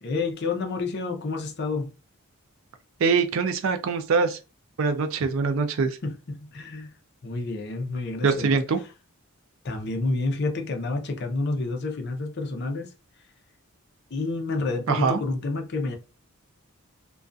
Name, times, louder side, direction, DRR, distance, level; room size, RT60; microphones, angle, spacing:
voice 1, 0.0-2.0 6.0-6.9 7.2-8.6 9.6-12.9 14.1-16.0, left 3 dB, 50° left, 0.5 m, -29 dB
voice 2, 3.0-4.4 4.8-6.0 8.2-8.8 14.9-15.2, right 4 dB, 60° right, 0.4 m, -23 dB
2.3 x 2.2 x 2.5 m
head